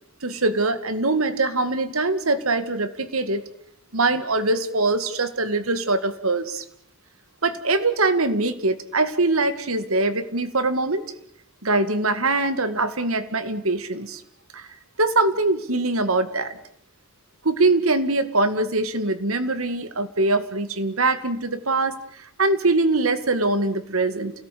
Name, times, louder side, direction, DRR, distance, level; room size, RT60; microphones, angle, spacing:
voice 1, 0.2-3.4 3.9-6.6 7.4-11.0 11.6-14.2 14.5-14.7 15.0-16.6 17.4-22.0 22.4-24.3, right 2 dB, 75° right, 11 dB, 2.1 m, -23 dB
29.0 x 18.0 x 8.5 m, 0.69 s
head